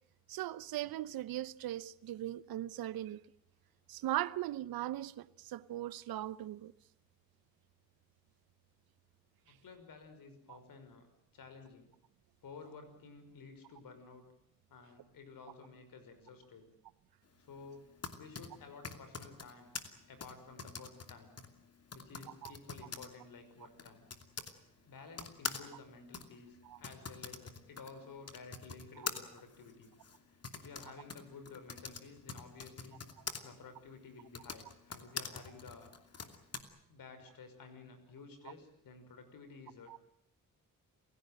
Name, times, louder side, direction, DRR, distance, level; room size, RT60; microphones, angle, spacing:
voice 1, 0.3-3.2 3.9-6.7 10.5-10.6 22.4-22.5 26.6-26.8 29.0-29.1 39.9-40.0, right 14 dB, 90° right, 0.9 m, -39 dB
voice 2, 9.4-11.1 11.3-11.9 12.4-14.3 14.7-16.7 17.4-17.9 18.2-19.7 20.1-21.4 21.9-24.1 24.9-29.9 30.3-33.0 33.4-35.9 36.9-40.0, left 4 dB, 70° left, 6.0 m, -53 dB
Typing, 17.7-24.6 25.1-33.4 34.2-36.6, left 5 dB, 45° left, 2.8 m, -45 dB
28.5 x 16.5 x 9.1 m
cardioid pair, 85°, 35 cm